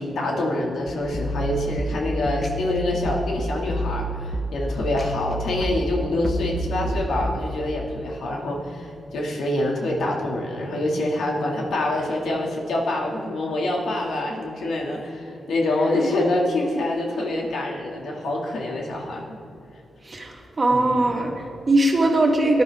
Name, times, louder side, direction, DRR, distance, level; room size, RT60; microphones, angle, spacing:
voice 1, 0.0-19.2 20.7-21.1, left 1 dB, 85° left, -1 dB, 2.3 m, -26 dB
sound 1, 0.9-7.4, equal, 40° left, 1.2 m, -29 dB
voice 2, 20.0-22.6, right 2 dB, 35° right, 0 dB, 2.1 m, -20 dB
18.0 x 10.5 x 3.6 m, 2.6 s
cardioid pair, 95°, 0 cm